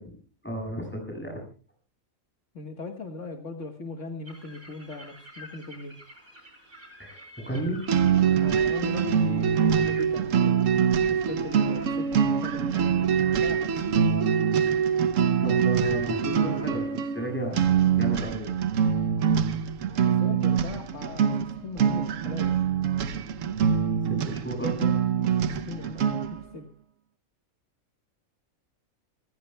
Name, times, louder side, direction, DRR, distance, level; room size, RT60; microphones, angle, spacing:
voice 1, 0.4-1.4 7.0-7.8 15.4-18.5 24.0-24.9, right 1 dB, 10° left, 1 dB, 7.6 m, -33 dB
voice 2, 2.5-6.0 8.4-10.7 11.1-13.1 13.4-13.8 20.1-22.7 25.2-26.7, left 3 dB, 60° left, 4 dB, 1.9 m, -39 dB
sound 1, 4.2-18.1, equal, 45° right, 5.2 m, -52 dB
sound 2, 7.9-26.4, right 7 dB, 70° right, 1.2 m, -24 dB
28.5 x 15.5 x 2.3 m, 0.39 s
omnidirectional pair, 1.4 m